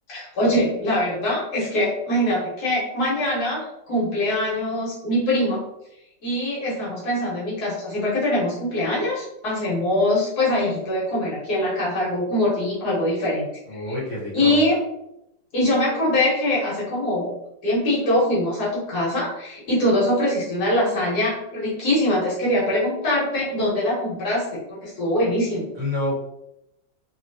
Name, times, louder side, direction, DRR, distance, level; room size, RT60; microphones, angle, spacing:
voice 1, 0.1-5.6 6.2-13.4 14.3-14.8 15.5-17.3 17.6-25.7, left 1 dB, 60° left, -6 dB, 1.4 m, -23 dB
voice 2, 13.7-14.6 25.7-26.1, left 1 dB, 40° right, -8 dB, 1.3 m, -28 dB
3.0 x 2.7 x 2.6 m, 0.83 s
omnidirectional pair, 2.0 m